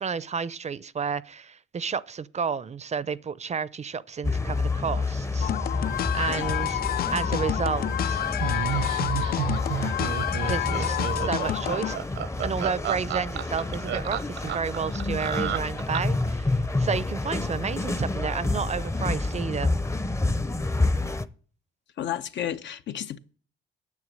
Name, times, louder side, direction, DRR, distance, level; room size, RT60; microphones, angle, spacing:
voice 1, 0.0-5.8 6.1-6.8 7.1-8.2 10.4-12.0 12.4-19.7, right 6 dB, 35° right, 0.6 m, -31 dB
sound 1, 4.2-21.3, left 3 dB, 15° left, 0.7 m, -29 dB
sound 2, 5.4-12.0, left 12 dB, 50° left, 0.4 m, -29 dB
Laughter, 8.4-16.3, right 10 dB, 70° right, 0.8 m, -31 dB
voice 2, 22.0-23.2, left 10 dB, 70° left, 0.8 m, -32 dB
9.6 x 7.0 x 7.5 m
cardioid pair, 90°, 20 cm